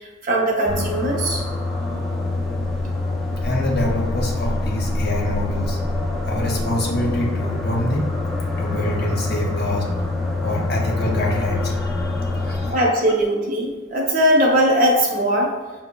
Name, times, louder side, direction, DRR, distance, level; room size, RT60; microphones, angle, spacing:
voice 1, 0.2-1.4 12.5-15.5, equal, 45° right, -1 dB, 0.7 m, -19 dB
sound 1, 0.7-12.7, left 2 dB, ahead, 0.4 m, -25 dB
voice 2, 3.4-5.8 6.3-8.1 8.6-9.9 10.4-12.8, left 1 dB, 55° left, 0 dB, 0.6 m, -25 dB
5.5 x 2.0 x 2.2 m, 1.2 s
head